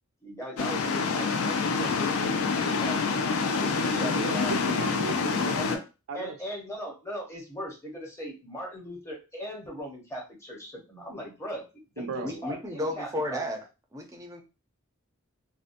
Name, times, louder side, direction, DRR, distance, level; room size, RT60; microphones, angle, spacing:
voice 1, 0.2-4.5 5.6-5.9 6.1-11.7 11.9-13.4, equal, 15° left, -1 dB, 0.8 m, -39 dB
sound 1, 0.6-5.8, left 4 dB, 85° left, 0.4 m, -27 dB
voice 2, 3.9-5.6 6.1-6.4 12.0-12.6, right 4 dB, 75° right, 6 dB, 0.4 m, -36 dB
voice 3, 12.2-13.6 13.9-14.4, left 1 dB, 15° right, 3 dB, 0.5 m, -33 dB
2.7 x 2.1 x 2.5 m, 0.29 s
head